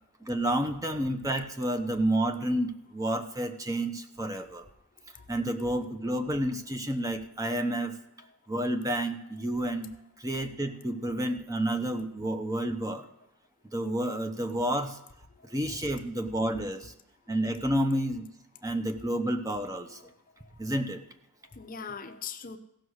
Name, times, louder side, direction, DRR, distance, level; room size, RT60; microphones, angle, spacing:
voice 1, 0.2-4.7 5.3-7.9 8.5-9.9 10.2-13.1 13.7-15.0 15.5-16.9 17.3-18.2 18.6-20.0 20.6-21.0, right 1 dB, 15° right, 6 dB, 0.8 m, -30 dB
voice 2, 15.4-15.9 16.3-16.6 19.9-20.7 21.5-22.6, left 6 dB, 40° left, 8 dB, 0.7 m, -43 dB
16.0 x 6.2 x 6.4 m, 0.85 s
head